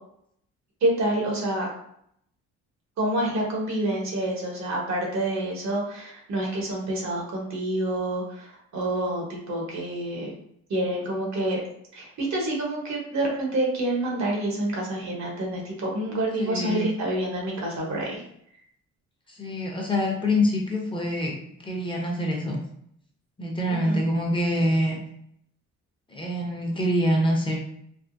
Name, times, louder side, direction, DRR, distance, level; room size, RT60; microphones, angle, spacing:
voice 1, 0.8-1.7 3.0-10.3 10.7-11.6 11.9-18.2 23.7-24.0, right 1 dB, 65° right, -1 dB, 1.2 m, -27 dB
voice 2, 16.4-16.9 19.3-21.3 21.6-22.6 23.4-25.0 26.1-27.6, equal, 15° left, -2 dB, 0.8 m, -25 dB
3.4 x 2.0 x 2.6 m, 0.70 s
cardioid pair, 90°, 30 cm